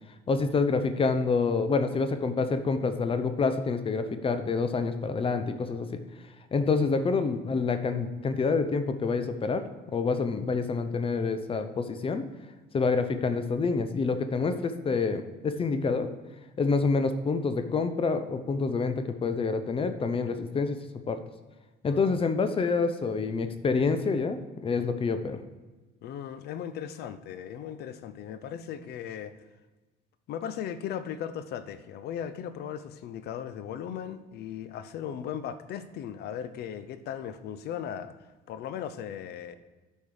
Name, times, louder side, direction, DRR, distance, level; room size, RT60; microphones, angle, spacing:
voice 1, 0.3-6.0 6.5-9.6 9.9-12.2 12.7-16.1 16.6-20.8 21.1-21.2 21.8-25.4, left 4 dB, 35° left, 9 dB, 0.7 m, -27 dB
voice 2, 21.8-22.2 26.0-29.3 30.3-38.2 38.5-39.6, left 9 dB, 70° left, 13 dB, 0.7 m, -37 dB
8.8 x 5.2 x 4.9 m, 1.2 s
cardioid pair, 110°, 17 cm